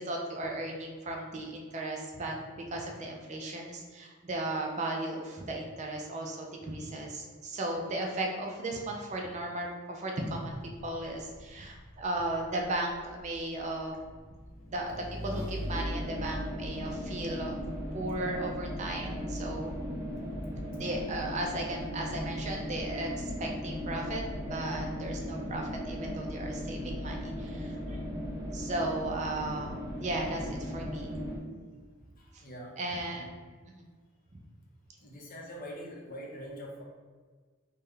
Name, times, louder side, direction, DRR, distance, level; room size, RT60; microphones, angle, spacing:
voice 1, 0.0-14.0 14.7-17.5 17.9-19.7 20.8-28.0 28.5-31.1 32.3-32.4 32.8-33.3 33.7-33.8, right 1 dB, 35° right, 1 dB, 0.4 m, -36 dB
Motorcycle / Engine, 10.7-17.5, equal, 85° left, 0.8 m, -43 dB
sound 1, 15.6-31.4, equal, 15° right, 0.8 m, -37 dB
voice 2, 32.0-32.8 35.0-36.8, equal, 45° left, -2 dB, 0.7 m, -44 dB
3.5 x 2.1 x 3.2 m, 1.5 s
head